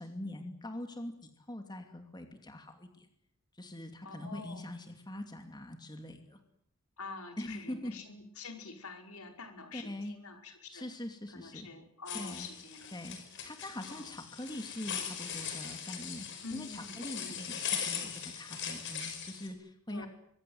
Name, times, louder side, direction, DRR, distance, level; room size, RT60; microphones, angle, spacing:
voice 1, 0.0-3.1 3.5-6.4 7.4-7.9 9.7-10.2 10.7-11.7 12.1-12.5 12.9-13.2 13.4-16.3 16.5-20.1, left 1 dB, 20° left, 5 dB, 2.6 m, -43 dB
voice 2, 4.0-4.7 7.0-10.8 11.3-12.9 13.4-13.5 13.9-14.2 16.4-17.5 19.9-20.1, left 4 dB, 75° left, 5 dB, 5.0 m, -47 dB
sound 1, 12.1-19.5, left 8 dB, 55° left, 5.6 m, -40 dB
24.5 x 24.0 x 8.0 m, 0.72 s
head